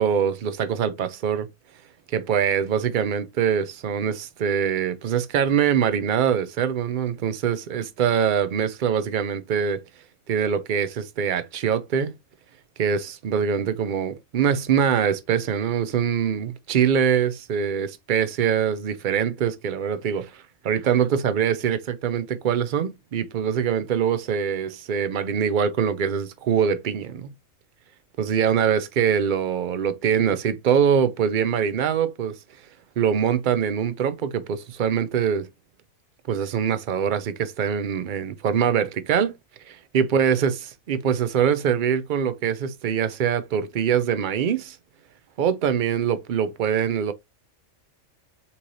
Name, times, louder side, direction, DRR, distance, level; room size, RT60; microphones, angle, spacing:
voice 1, 0.0-1.5 2.1-9.8 10.3-12.1 12.8-27.3 28.2-32.4 33.0-35.5 36.3-39.3 39.7-40.6 40.9-44.8 45.4-47.1, right 8 dB, 60° right, 0.5 m, -23 dB
5.6 x 3.2 x 2.6 m
omnidirectional pair, 1.5 m